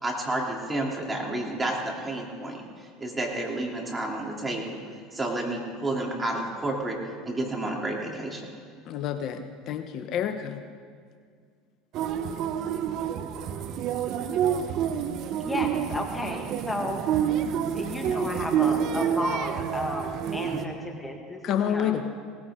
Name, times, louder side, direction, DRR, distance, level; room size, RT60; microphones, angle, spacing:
voice 1, 0.0-4.8 5.1-7.0 7.2-8.5 20.5-20.6, right 2 dB, 15° right, -1 dB, 3.1 m, -30 dB
voice 2, 8.9-10.6 21.4-22.0, left 9 dB, 55° left, 7 dB, 0.9 m, -28 dB
sound 1, 11.9-20.6, right 8 dB, 55° right, 0.9 m, -28 dB
voice 3, 15.4-17.1 17.7-20.7 21.0-21.9, left 2 dB, 10° left, 2 dB, 1.7 m, -33 dB
18.5 x 15.5 x 3.8 m, 2.1 s
hypercardioid pair, 90°, 0 cm